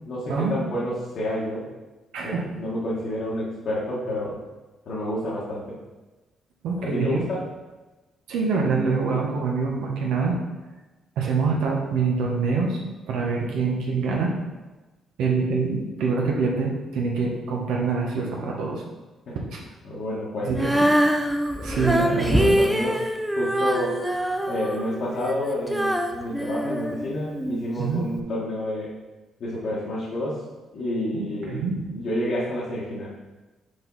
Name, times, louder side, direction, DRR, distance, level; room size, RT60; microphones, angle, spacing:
voice 1, 0.0-1.7 2.2-4.4 4.8-5.8 6.8-7.4 19.3-19.4 19.8-20.7 21.5-23.0 23.4-24.0 24.5-28.9 29.4-30.4 30.7-31.7 31.9-33.1, left 1 dB, 65° left, -8 dB, 1.4 m, -29 dB
voice 2, 2.1-2.4 6.6-7.2 8.3-10.4 11.2-12.8 13.1-14.3 15.2-18.8 19.3-19.6 20.4-20.9 21.6-22.6 27.8-28.1 31.1-31.9, right 4 dB, 85° right, -1 dB, 1.0 m, -25 dB
Female singing, 20.5-27.6 28.2-28.3, equal, 5° right, 0.6 m, -24 dB
5.3 x 4.4 x 4.0 m, 1.2 s
cardioid pair, 90°, 0 cm